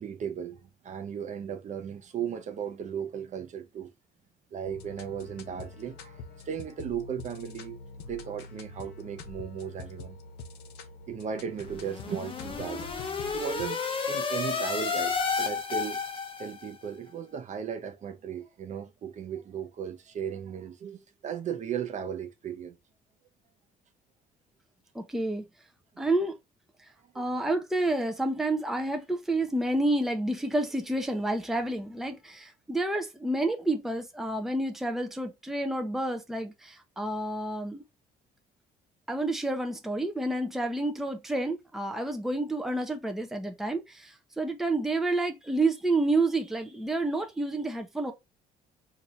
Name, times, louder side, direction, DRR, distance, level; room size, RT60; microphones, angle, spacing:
voice 1, 0.0-3.9 4.5-7.8 8.0-10.2 11.1-12.9 13.3-13.8 14.1-16.0 16.4-22.8 27.1-27.3, right 8 dB, 45° right, 0.6 m, -36 dB
sound 1, 4.6-13.7, left 4 dB, 85° left, 0.8 m, -45 dB
sound 2, 11.7-16.7, left 5 dB, 30° left, 0.7 m, -31 dB
voice 2, 24.9-25.4 26.0-26.3 27.1-37.8 39.1-48.1, right 2 dB, ahead, 0.6 m, -29 dB
2.7 x 2.6 x 4.3 m
cardioid pair, 110°, 17 cm